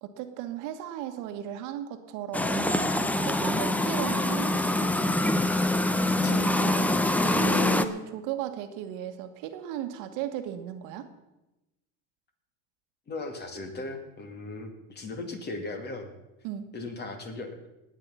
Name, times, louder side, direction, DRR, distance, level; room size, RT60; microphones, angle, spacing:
voice 1, 0.0-4.9 6.3-11.1 16.4-16.7, right 10 dB, 55° right, 7 dB, 1.5 m, -36 dB
sound 1, 2.3-7.9, left 1 dB, 5° left, 0.6 m, -25 dB
voice 2, 6.2-6.7 13.1-16.1 16.7-17.6, left 2 dB, 25° left, 6 dB, 2.3 m, -37 dB
19.5 x 9.1 x 5.7 m, 0.98 s
supercardioid pair, 135°, 37 cm